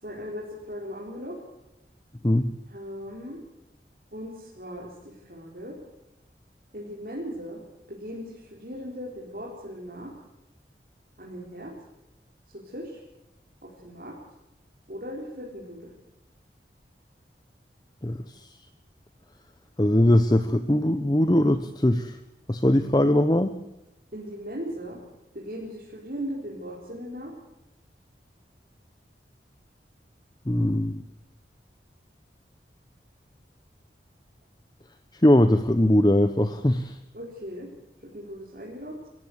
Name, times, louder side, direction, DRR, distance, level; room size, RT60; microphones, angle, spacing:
voice 1, 0.0-1.4 2.7-3.4 4.1-5.7 6.7-7.6 7.9-10.1 11.2-11.7 12.5-13.0 13.6-14.1 14.9-15.9 24.1-25.0 25.3-27.3 37.1-37.7 38.0-38.9, equal, 55° right, -4 dB, 4.3 m, -38 dB
voice 2, 18.0-18.5 19.8-22.2 22.5-23.5 30.5-31.0 35.2-37.0, left 1 dB, 25° left, 10 dB, 0.8 m, -21 dB
26.5 x 15.0 x 8.1 m, 0.92 s
head